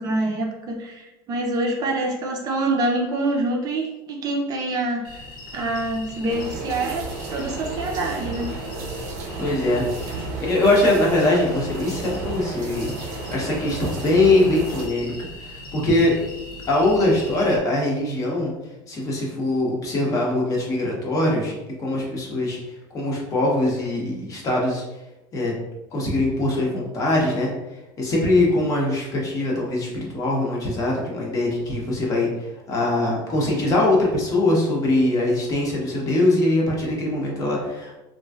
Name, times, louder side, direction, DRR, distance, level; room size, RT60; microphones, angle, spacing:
voice 1, 0.0-5.3 5.5-8.5, right 2 dB, 35° right, 0 dB, 0.5 m, -26 dB
sound 1, 5.0-17.6, left 2 dB, 85° left, 0.7 m, -40 dB
sound 2, 6.3-14.9, right 3 dB, 80° right, 0.6 m, -33 dB
voice 2, 9.4-9.9 10.4-16.1 16.7-18.5 18.9-21.5 21.8-22.6 22.9-24.8 25.3-25.5 25.9-27.5 28.0-32.3 32.7-38.0, left 2 dB, 30° left, -2 dB, 0.8 m, -22 dB
3.0 x 2.6 x 2.3 m, 1.0 s
cardioid pair, 140°, 10 cm